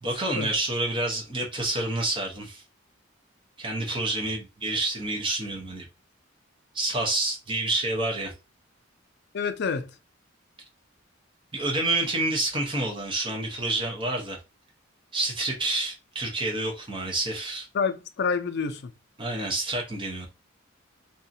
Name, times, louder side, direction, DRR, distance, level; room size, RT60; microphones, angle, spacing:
voice 1, 0.0-2.6 3.6-5.8 6.7-8.3 11.5-14.4 15.1-17.7 19.2-20.3, right 2 dB, 25° right, 0.8 m, -28 dB
voice 2, 9.3-9.9 17.7-18.9, left 5 dB, 55° left, 0.4 m, -28 dB
2.8 x 2.5 x 2.6 m
head